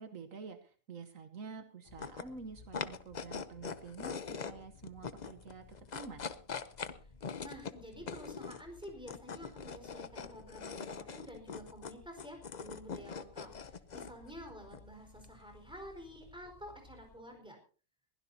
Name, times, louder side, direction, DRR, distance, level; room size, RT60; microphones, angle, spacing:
voice 1, 0.0-6.3, right 4 dB, 70° right, 8 dB, 1.5 m, -48 dB
sound 1, 1.9-17.2, left 5 dB, 40° left, 0.7 m, -45 dB
voice 2, 7.4-17.6, equal, 5° right, 3 dB, 4.6 m, -50 dB
22.0 x 16.0 x 2.8 m, 0.38 s
omnidirectional pair, 1.4 m